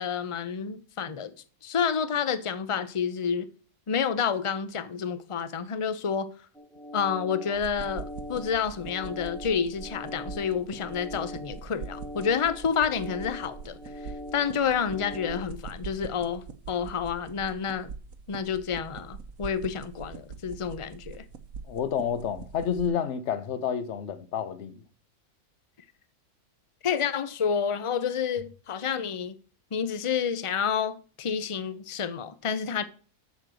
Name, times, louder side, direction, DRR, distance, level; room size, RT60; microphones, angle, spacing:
voice 1, 0.0-1.3 1.6-3.5 3.9-6.3 6.9-13.8 14.3-17.9 18.3-21.2 26.8-29.4 29.7-32.8, left 7 dB, 30° left, 0.6 m, -29 dB
sound 1, 6.5-15.4, left 1 dB, ahead, 1.5 m, -42 dB
sound 2, 7.5-22.9, right 6 dB, 70° right, 1.3 m, -43 dB
voice 2, 21.7-24.8, left 8 dB, 55° left, 1.2 m, -29 dB
8.3 x 6.6 x 7.6 m
omnidirectional pair, 1.6 m